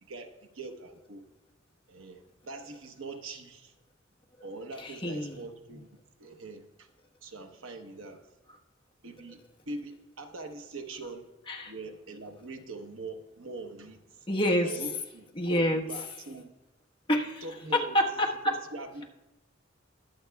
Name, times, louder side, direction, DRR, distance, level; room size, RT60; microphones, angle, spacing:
voice 1, 0.0-1.2 1.9-3.7 4.4-5.9 6.2-6.9 7.2-8.2 9.0-11.3 11.7-14.0 14.6-16.5 17.4-18.0 18.4-19.0, right 3 dB, 85° right, 6 dB, 1.0 m, -42 dB
voice 2, 4.8-5.4 11.5-11.7 14.3-14.7 15.3-15.8 17.1-17.4 17.7-18.5, equal, 25° left, 0 dB, 1.2 m, -27 dB
22.0 x 7.8 x 2.3 m, 1.0 s
head